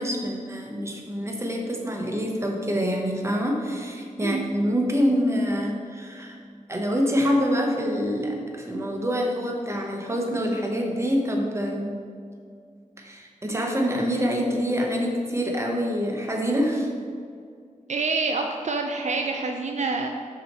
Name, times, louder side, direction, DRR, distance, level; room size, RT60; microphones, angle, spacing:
voice 1, 0.0-6.4 6.7-11.9 13.0-16.9, equal, 20° right, 1 dB, 0.9 m, -26 dB
voice 2, 17.9-20.1, right 3 dB, 60° right, 3 dB, 0.4 m, -27 dB
6.2 x 5.0 x 4.3 m, 2.2 s
wide cardioid pair, 100°, 14 cm